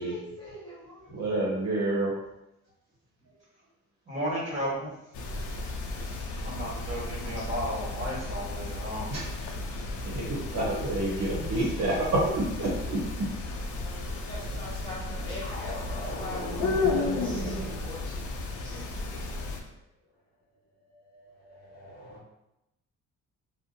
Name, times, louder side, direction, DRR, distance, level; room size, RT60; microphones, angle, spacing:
voice 1, 0.0-1.4 13.7-16.8 17.2-18.3 18.6-19.6, left 1 dB, 15° left, -8 dB, 1.3 m, -44 dB
voice 2, 1.1-2.1 3.3-3.4 6.4-6.5 9.1-13.7, right 2 dB, 60° right, -4 dB, 0.8 m, -29 dB
voice 3, 4.1-4.9 5.9-9.1, equal, 25° right, -7 dB, 1.4 m, -34 dB
sound 1, 5.1-19.6, left 3 dB, 75° left, 0.5 m, -34 dB
sound 2, 15.4-18.1 20.9-22.2, right 1 dB, 30° left, 0.8 m, -37 dB
2.6 x 2.0 x 2.6 m, 0.88 s
cardioid pair, 90°, 30 cm